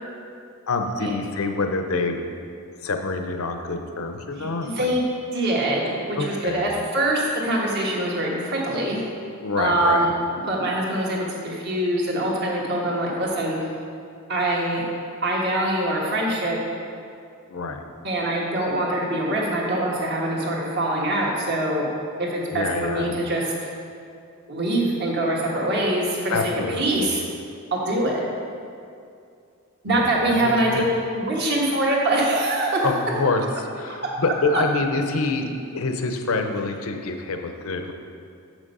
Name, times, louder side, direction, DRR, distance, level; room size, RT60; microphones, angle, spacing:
voice 1, 0.7-2.2 2.8-4.9 6.2-6.7 9.4-10.1 17.5-17.8 22.5-23.2 26.3-27.2 29.8-30.9 32.8-35.5 35.7-37.9, left 3 dB, 70° left, 5 dB, 0.6 m, -26 dB
voice 2, 4.4-5.0 5.3-9.0 9.6-10.1 10.5-13.6 14.3-14.8 15.2-16.6 18.0-21.9 22.2-23.7 24.5-26.4 26.8-27.2 27.7-28.2 29.8-30.8 31.1-32.9 33.9-34.1 34.5-34.6, right 1 dB, 50° right, -3 dB, 1.4 m, -24 dB
7.2 x 6.2 x 5.4 m, 2.4 s
head